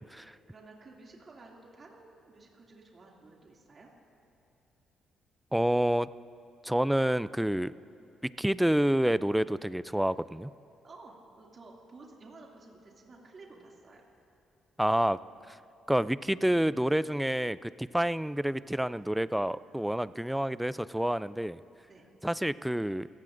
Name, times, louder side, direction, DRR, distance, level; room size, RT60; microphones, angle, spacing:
voice 1, 0.1-3.9 10.8-14.0 21.9-22.1, right 3 dB, 40° right, -2 dB, 2.4 m, -53 dB
voice 2, 5.5-6.1 6.6-7.7 8.4-10.5 14.8-15.2 15.9-21.6 22.2-23.1, right 1 dB, 5° right, 16 dB, 0.3 m, -28 dB
28.5 x 16.0 x 2.6 m, 2.8 s
cardioid pair, 90°, 0 cm